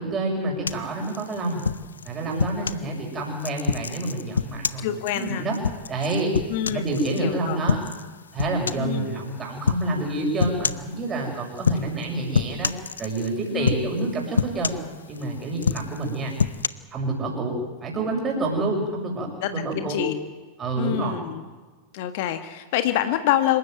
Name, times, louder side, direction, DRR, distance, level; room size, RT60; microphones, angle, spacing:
voice 1, 0.0-1.6 2.0-5.6 5.9-6.3 6.7-7.8 8.3-12.7 13.0-14.7 15.1-16.3 16.9-17.5 17.8-20.0 20.6-21.2, right 2 dB, 25° right, -1 dB, 6.9 m, -28 dB
sound 1, 0.7-2.9 3.4-7.2 7.7-8.1 8.4-8.9 9.7-9.9 10.4-10.9 11.6-12.0 12.3-13.3 13.7-14.0 14.4-15.2 15.6-16.7, left 6 dB, 70° left, 0.7 m, -27 dB
voice 2, 4.8-5.4 6.5-7.6 8.8-9.2 13.5-13.7 19.4-20.2 20.8-21.4 21.9-23.6, left 12 dB, 50° left, 9 dB, 1.6 m, -26 dB
26.5 x 15.0 x 9.5 m, 1.3 s
figure-of-eight pair, 90°, 0 cm